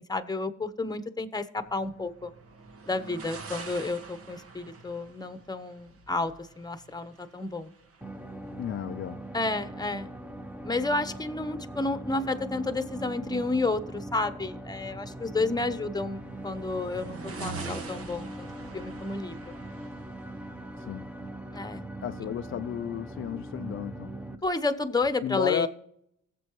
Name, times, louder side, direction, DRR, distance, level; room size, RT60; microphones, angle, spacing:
voice 1, 0.0-2.3 2.9-7.7 9.3-10.1 10.6-18.5 18.7-19.4 21.5-21.8 24.4-25.7, left 3 dB, 15° left, 1.0 m, -31 dB
sound 1, 1.6-21.3, right 4 dB, 50° right, 1.4 m, -47 dB
sound 2, 8.0-24.4, right 1 dB, 5° right, 0.8 m, -41 dB
voice 2, 8.6-9.2 20.8-21.1 22.0-24.1 25.2-25.7, left 9 dB, 45° left, 0.4 m, -33 dB
18.5 x 7.6 x 3.1 m
cardioid pair, 90°, 30 cm